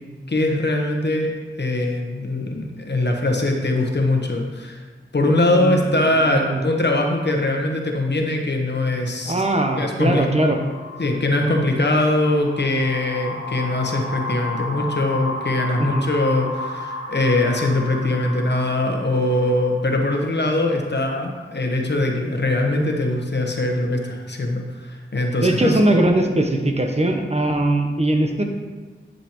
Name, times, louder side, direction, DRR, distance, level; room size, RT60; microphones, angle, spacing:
voice 1, 0.3-1.3 1.6-4.8 5.1-9.4 9.8-10.3 11.0-25.7, left 2 dB, 55° left, 2 dB, 1.1 m, -22 dB
voice 2, 5.5-6.6 9.2-10.6 15.8-16.1 25.4-28.4, right 1 dB, 30° right, 3 dB, 0.9 m, -20 dB
sound 1, 10.5-19.9, left 2 dB, 85° left, 1.6 m, -33 dB
10.5 x 5.4 x 3.0 m, 1.4 s
cardioid pair, 40°, 21 cm